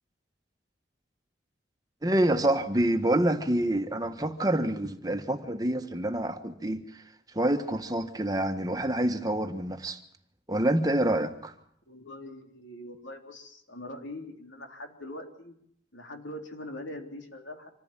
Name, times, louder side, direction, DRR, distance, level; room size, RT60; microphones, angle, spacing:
voice 1, 2.0-7.0 7.3-10.0 10.5-11.5, right 1 dB, 20° right, 1.3 m, -27 dB
voice 2, 11.9-15.5 15.9-17.7, left 1 dB, 80° left, 3.6 m, -42 dB
26.0 x 15.0 x 8.9 m
head